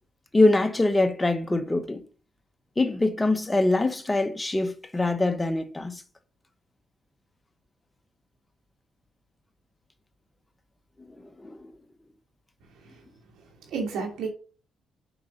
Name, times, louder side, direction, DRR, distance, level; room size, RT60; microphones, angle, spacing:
voice 1, 0.3-2.0 2.8-6.0 11.4-11.7, left 2 dB, 15° left, 1.0 m, -23 dB
voice 2, 13.3-14.3, right 5 dB, 80° right, 2.8 m, -33 dB
6.9 x 5.4 x 5.5 m
cardioid pair, 90°, 0 cm